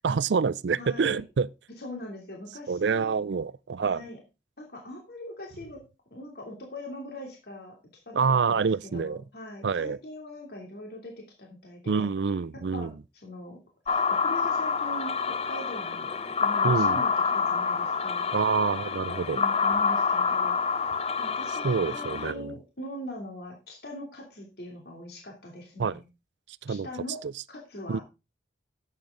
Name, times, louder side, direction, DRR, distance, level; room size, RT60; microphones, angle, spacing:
voice 1, 0.0-1.5 2.7-4.0 8.2-9.2 9.6-10.0 11.9-12.9 16.6-17.0 18.3-19.4 21.6-22.5 25.8-26.0 26.6-26.9 27.9-28.0, right 5 dB, 75° right, 0.4 m, -26 dB
voice 2, 0.8-1.2 1.8-3.2 3.8-4.2 4.6-5.8 6.1-7.8 8.1-12.1 12.5-12.9 13.2-13.6 13.9-16.1 16.4-18.2 19.1-20.6 21.2-26.1 26.7-27.2 27.5-28.0, left 1 dB, 55° left, 2.9 m, -41 dB
sound 1, 13.9-22.3, left 5 dB, 35° left, 0.5 m, -27 dB
11.5 x 8.5 x 3.8 m
head